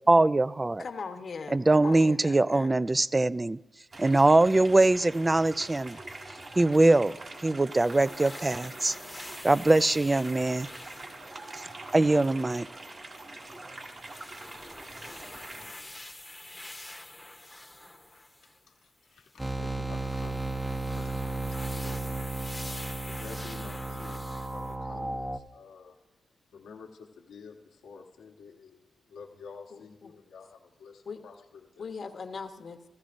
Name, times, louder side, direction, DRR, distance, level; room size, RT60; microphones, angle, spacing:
voice 1, 0.1-0.8 1.5-3.6 4.0-6.0 6.6-7.2 7.4-9.0 9.4-10.7 11.5-11.6 11.9-12.7, right 2 dB, 25° right, 16 dB, 0.4 m, -22 dB
voice 2, 0.8-2.8 29.7-30.1 31.1-31.2 31.8-32.8, left 5 dB, 60° left, 7 dB, 1.1 m, -40 dB
sound 1, 3.9-15.7, right 2 dB, 50° right, 3.2 m, -44 dB
sound 2, 7.7-12.1 13.2-18.6 19.1-19.4 19.9-24.8, left 1 dB, 15° left, 1.0 m, -46 dB
voice 3, 18.7-22.2 22.6-24.2 24.5-26.0 26.5-31.9, left 5 dB, 90° left, 1 dB, 1.2 m, -50 dB
sound 3, 19.4-25.4, right 2 dB, 10° right, 0.8 m, -34 dB
15.0 x 14.5 x 2.6 m, 1.1 s
supercardioid pair, 50°, 0 cm